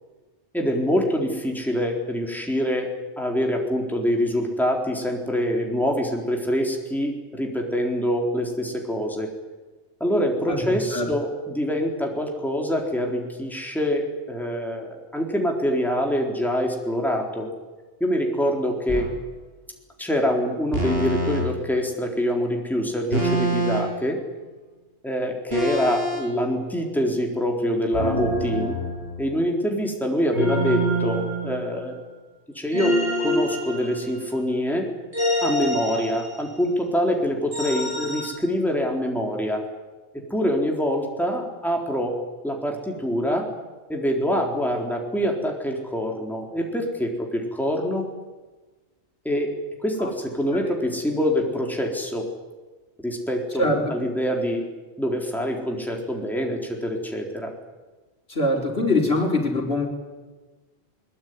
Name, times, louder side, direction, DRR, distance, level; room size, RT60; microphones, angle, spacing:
voice 1, 0.5-2.9 3.2-9.3 10.0-17.5 18.0-19.1 20.0-24.2 25.0-28.8 29.2-32.0 32.5-34.9 35.4-39.6 40.3-42.1 42.4-43.5 43.9-48.1 49.2-49.5 49.8-52.3 53.0-54.7 55.0-57.5, equal, ahead, 0 dB, 4.1 m, -25 dB
sound 1, 18.9-19.1 20.7-21.4 23.1-24.0 25.5-26.2 27.9-29.4 30.3-31.9 32.7-34.4 35.1-36.6 37.5-38.3, equal, 55° right, 7.7 m, -26 dB
voice 2, 53.6-53.9 58.3-59.9, left 1 dB, 55° left, 1 dB, 4.4 m, -23 dB
22.0 x 22.0 x 9.7 m, 1.2 s
omnidirectional pair, 1.2 m